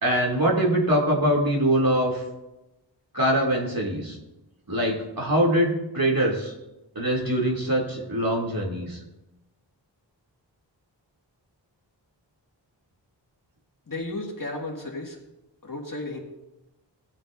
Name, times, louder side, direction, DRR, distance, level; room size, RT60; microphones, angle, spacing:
voice 1, 0.0-2.2 3.1-4.2 4.7-6.5 6.9-9.0, right 1 dB, 50° right, -2 dB, 2.8 m, -23 dB
voice 2, 13.9-15.2 15.6-16.2, left 2 dB, 45° left, 0 dB, 2.0 m, -33 dB
18.5 x 8.6 x 2.6 m, 0.97 s
wide cardioid pair, 55°, 45 cm